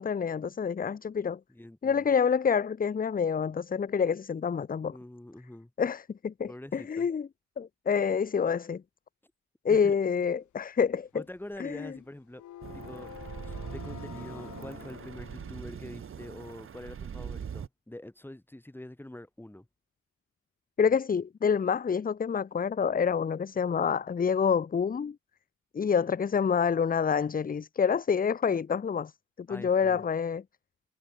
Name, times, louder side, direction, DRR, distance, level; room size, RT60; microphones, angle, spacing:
voice 1, 0.0-1.4 1.8-5.0 5.8-7.3 7.6-8.8 9.6-11.1 11.6-11.9 20.8-25.2 25.7-29.1 29.5-30.4, left 6 dB, 30° left, 0.8 m, -27 dB
voice 2, 1.5-2.1 4.9-5.7 6.5-7.1 9.7-10.0 11.1-12.4 12.7-13.1 13.4-19.7 29.5-30.0, left 1 dB, 5° left, 5.4 m, -45 dB
sound 1, 10.8-16.4, left 13 dB, 70° left, 1.9 m, -48 dB
sound 2, 12.6-17.7, right 7 dB, 45° right, 1.8 m, -41 dB
cardioid pair, 90°, 30 cm